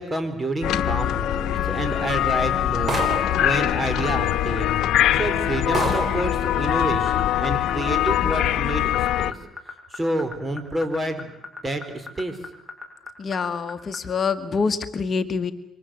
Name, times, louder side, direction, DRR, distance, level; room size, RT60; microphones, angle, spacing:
voice 1, 0.0-3.0 3.4-4.8 5.1-9.4 9.9-11.3 11.6-12.4, right 1 dB, 20° right, 8 dB, 4.7 m, -28 dB
sound 1, 0.6-9.3, left 12 dB, 80° left, 1.0 m, -23 dB
sound 2, 2.9-3.5 4.5-4.6 5.1-5.2 5.7-6.3, right 3 dB, 35° right, 4.4 m, -27 dB
sound 3, 3.7-14.0, left 4 dB, ahead, 7.5 m, -36 dB
voice 2, 13.2-15.5, left 5 dB, 45° left, 9 dB, 1.6 m, -26 dB
27.5 x 24.5 x 7.9 m, 0.77 s
cardioid pair, 90°, 0 cm